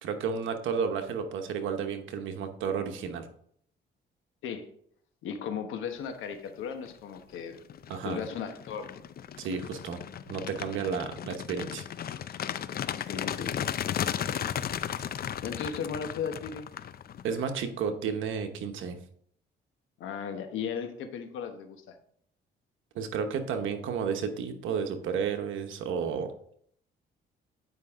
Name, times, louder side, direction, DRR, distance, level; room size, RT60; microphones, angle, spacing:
voice 1, 0.0-3.3 7.9-8.2 9.4-10.0 10.3-11.8 17.2-19.0 22.9-26.3, right 6 dB, 80° right, 7 dB, 1.0 m, -32 dB
voice 2, 5.2-7.6 8.0-9.1 13.0-13.5 14.2-14.5 15.4-16.7 20.0-21.9, left 7 dB, 85° left, 7 dB, 1.2 m, -36 dB
sound 1, 6.6-6.9 7.3-17.4, left 9 dB, 50° left, 0.5 m, -35 dB
9.4 x 5.4 x 3.7 m, 0.66 s
cardioid pair, 90°, 20 cm